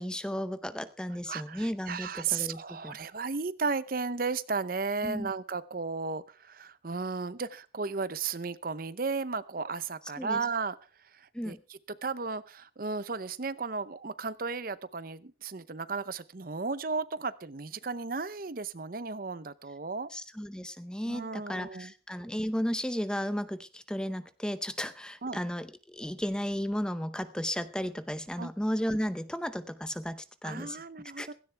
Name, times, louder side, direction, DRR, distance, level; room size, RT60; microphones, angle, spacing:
voice 1, 0.0-3.0 5.0-5.3 10.2-10.4 11.3-11.6 20.1-30.8 31.2-31.3, equal, 5° left, 0.6 m, -34 dB
voice 2, 1.3-10.8 11.1-20.1 21.1-21.9 25.2-25.4 28.4-28.5 30.4-31.3, right 4 dB, 50° right, 0.7 m, -34 dB
16.5 x 16.0 x 3.4 m
head